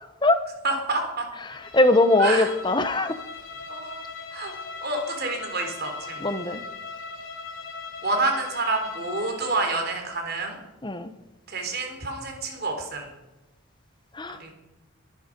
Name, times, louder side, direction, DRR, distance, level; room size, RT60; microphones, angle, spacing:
voice 1, 0.6-1.3 2.2-2.5 3.7-4.0 4.3-4.5 4.8-6.3 8.0-10.6 11.5-13.1 14.3-14.5, right 2 dB, 50° right, 3 dB, 3.6 m, -28 dB
Bowed string instrument, 1.5-9.9, left 4 dB, 65° left, 2.7 m, -39 dB
voice 2, 1.5-3.2 6.2-6.6 10.8-11.1 14.1-14.4, left 2 dB, 20° left, 11 dB, 0.9 m, -21 dB
22.0 x 10.0 x 5.2 m, 1.1 s
head